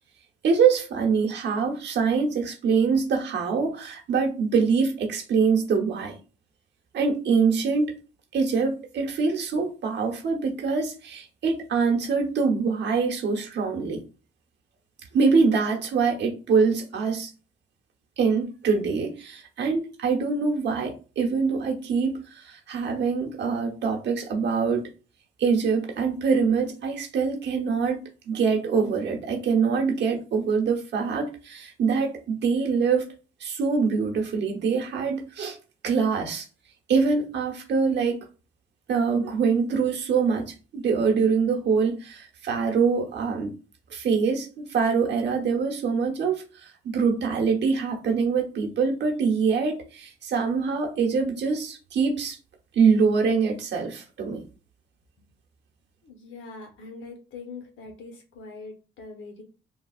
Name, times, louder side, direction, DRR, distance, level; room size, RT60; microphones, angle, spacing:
voice 1, 0.4-6.1 6.9-7.9 8.3-14.0 15.1-17.3 18.2-24.9 25.4-28.0 28.3-33.1 33.4-35.6 35.8-36.5 36.9-38.2 38.9-43.5 43.9-52.4 52.7-54.4, right 5 dB, 60° right, 1.0 m, -24 dB
voice 2, 56.0-59.4, left 3 dB, 75° left, 1.0 m, -42 dB
3.3 x 2.3 x 2.4 m
cardioid pair, 90°, 20 cm